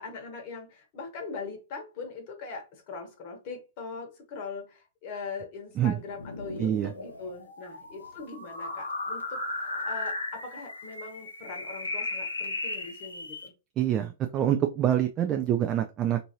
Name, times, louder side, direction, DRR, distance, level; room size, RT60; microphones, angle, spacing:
voice 1, 0.0-13.5, left 4 dB, 45° left, 1.0 m, -41 dB
sound 1, 6.1-13.5, left 2 dB, 80° left, 0.7 m, -36 dB
voice 2, 6.6-6.9 13.8-16.2, right 10 dB, 30° right, 0.3 m, -26 dB
2.7 x 2.6 x 2.7 m
figure-of-eight pair, 105°, 0 cm